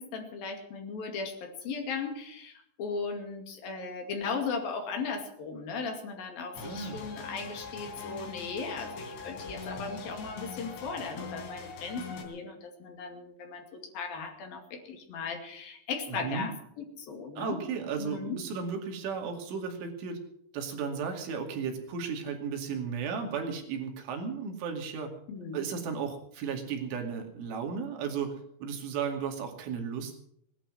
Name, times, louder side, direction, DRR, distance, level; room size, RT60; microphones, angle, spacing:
voice 1, 0.0-17.7 18.0-18.5 25.3-25.7, left 4 dB, 55° left, 4 dB, 3.7 m, -37 dB
sound 1, 6.5-12.2, left 5 dB, 70° left, 5.6 m, -42 dB
voice 2, 6.6-7.0 16.1-16.5 17.4-20.2 20.5-25.1 25.5-28.3 28.6-30.2, right 6 dB, 75° right, 3 dB, 4.8 m, -34 dB
19.0 x 12.0 x 6.3 m, 0.71 s
omnidirectional pair, 5.6 m